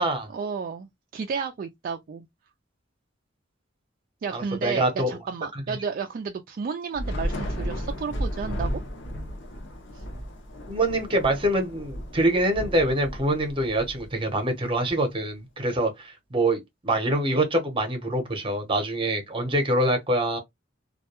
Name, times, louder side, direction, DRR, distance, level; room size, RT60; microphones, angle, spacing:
voice 1, 0.3-2.3 4.2-8.8 9.9-10.0, right 5 dB, 45° right, 0.3 m, -32 dB
voice 2, 4.3-5.2 5.5-5.8 10.7-20.4, right 1 dB, 25° right, 0.7 m, -25 dB
Thunder / Rain, 6.9-14.5, equal, 65° left, 0.7 m, -34 dB
2.3 x 2.1 x 2.8 m
head